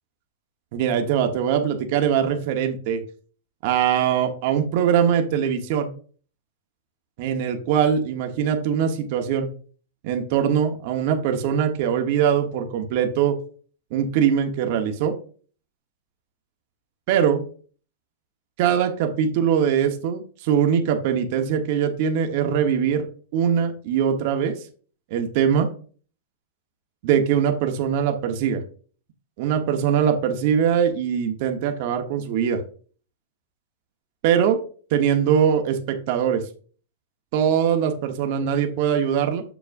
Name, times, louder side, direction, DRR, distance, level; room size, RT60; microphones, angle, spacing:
voice 1, 0.7-3.0 3.6-5.9 7.2-9.5 10.0-13.4 13.9-15.1 17.1-17.4 18.6-23.1 23.3-24.5 25.1-25.7 27.0-28.6 29.4-32.6 34.2-34.6 34.9-36.4 37.3-39.4, right 8 dB, 50° right, 5 dB, 1.2 m, -22 dB
7.1 x 6.5 x 2.6 m, 0.41 s
supercardioid pair, 150°, 0 cm